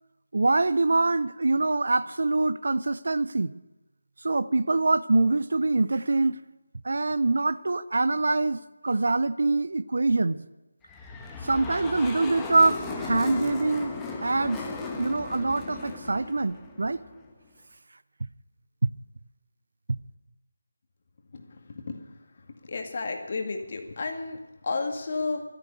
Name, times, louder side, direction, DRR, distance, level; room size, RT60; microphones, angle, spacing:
voice 1, 0.3-3.5 4.2-6.4 6.8-10.4 11.4-13.9 14.2-14.6 15.0-17.0 18.8-18.9, right 3 dB, 60° right, 17 dB, 0.6 m, -24 dB
sound 1, 10.9-17.3, left 3 dB, 10° left, 1.4 m, -36 dB
voice 2, 21.3-22.0 22.7-25.4, left 3 dB, 40° left, 4 dB, 2.1 m, -32 dB
12.5 x 11.5 x 9.7 m, 1.0 s
figure-of-eight pair, 160°, 0 cm